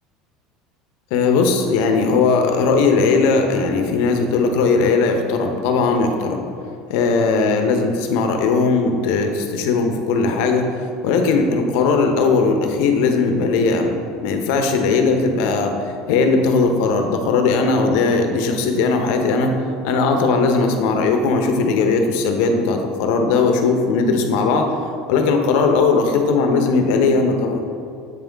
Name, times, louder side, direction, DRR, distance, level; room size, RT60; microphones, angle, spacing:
voice 1, 1.1-6.4 6.9-10.6 11.0-15.7 16.1-19.6 19.8-24.7 25.1-27.6, left 4 dB, 75° left, 4 dB, 0.9 m, -18 dB
8.3 x 5.5 x 3.5 m, 2.5 s
supercardioid pair, 130°, 0 cm